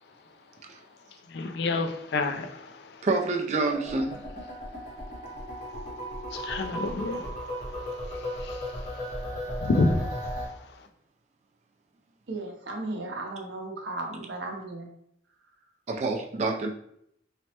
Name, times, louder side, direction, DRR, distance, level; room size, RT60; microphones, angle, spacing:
voice 1, 1.3-2.5 6.3-7.2 9.6-10.0, left 3 dB, 60° left, 0.3 m, -27 dB
voice 2, 3.0-4.2 15.9-16.7, right 3 dB, 40° right, 0.4 m, -27 dB
sound 1, 3.7-10.5, equal, 40° left, 1.1 m, -36 dB
voice 3, 12.3-14.9, right 2 dB, 75° right, 0.6 m, -35 dB
3.2 x 2.1 x 2.8 m
head